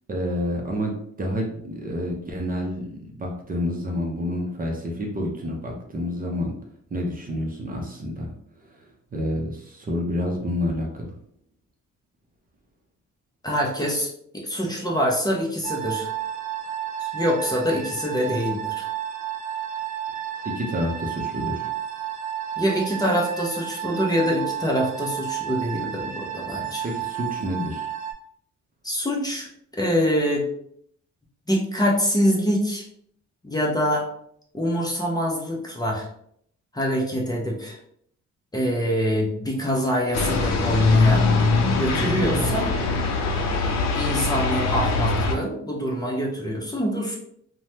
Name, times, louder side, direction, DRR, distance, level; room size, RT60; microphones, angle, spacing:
voice 1, 0.1-6.6 6.9-8.3 8.6-11.2 20.4-21.7 26.8-27.9, left 1 dB, 30° right, 0 dB, 0.6 m, -29 dB
voice 2, 13.4-16.1 17.0-18.9 22.6-26.9 28.8-29.5 29.7-30.5 31.5-32.9 33.4-34.1 34.5-36.1 36.7-37.8 38.5-41.3 41.8-42.7 43.9-47.2, equal, 15° left, -2 dB, 0.7 m, -25 dB
sound 1, 15.6-28.1, right 10 dB, 65° right, 0.7 m, -32 dB
sound 2, 40.1-45.4, left 3 dB, 60° left, 0.6 m, -22 dB
3.1 x 2.2 x 2.8 m, 0.68 s
cardioid pair, 90°, 30 cm